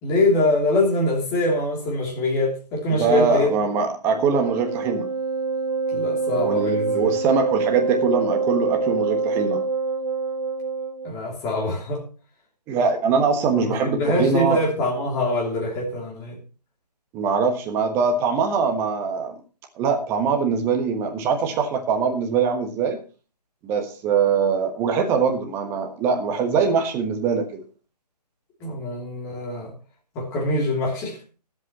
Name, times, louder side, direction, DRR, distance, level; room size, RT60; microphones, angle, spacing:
voice 1, 0.0-3.5 5.9-7.0 11.0-12.0 13.6-16.3 28.6-29.7 30.1-31.2, left 1 dB, 15° left, -1 dB, 3.0 m, -24 dB
voice 2, 2.9-5.1 6.3-9.6 12.7-14.6 17.1-19.4 19.8-23.0 23.6-27.6, right 5 dB, 10° right, 5 dB, 1.2 m, -22 dB
Wind instrument woodwind instrument, 4.1-11.1, right 4 dB, 65° right, 1.2 m, -25 dB
22.0 x 8.2 x 3.0 m, 0.35 s
figure-of-eight pair, 150°, 21 cm